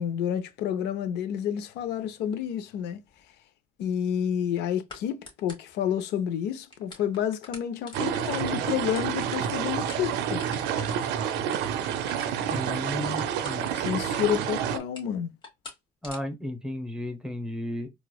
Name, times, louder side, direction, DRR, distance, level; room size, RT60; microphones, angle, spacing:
voice 1, 0.0-3.0 3.8-10.4 13.7-15.3, left 9 dB, 85° left, 0.5 m, -29 dB
sound 1, 3.1-3.2 4.9-5.0 5.3-5.8 6.3-6.4 6.6-12.7 13.2-14.0 14.3-15.1 15.4-15.8 16.0-16.2, left 3 dB, 30° left, 1.3 m, -45 dB
sound 2, 7.9-14.8, right 8 dB, 85° right, 0.5 m, -29 dB
voice 2, 12.5-13.7 16.0-17.9, left 1 dB, 5° right, 0.8 m, -34 dB
4.1 x 2.3 x 2.3 m
cardioid pair, 110°, 17 cm